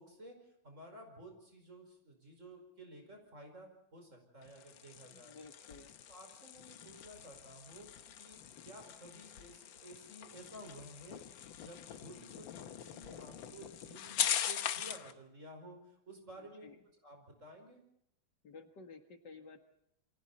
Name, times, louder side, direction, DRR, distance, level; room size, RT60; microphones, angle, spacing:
voice 1, 0.0-5.4 6.1-7.9 8.2-11.2 11.5-16.7 17.0-17.8, right 1 dB, 40° right, 4 dB, 5.5 m, -53 dB
sound 1, 4.4-15.1, left 10 dB, 80° left, 1.7 m, -42 dB
voice 2, 5.1-5.9 16.3-16.8 18.4-19.6, left 4 dB, 60° left, 6 dB, 2.3 m, -54 dB
28.5 x 24.5 x 4.2 m, 0.71 s
omnidirectional pair, 2.1 m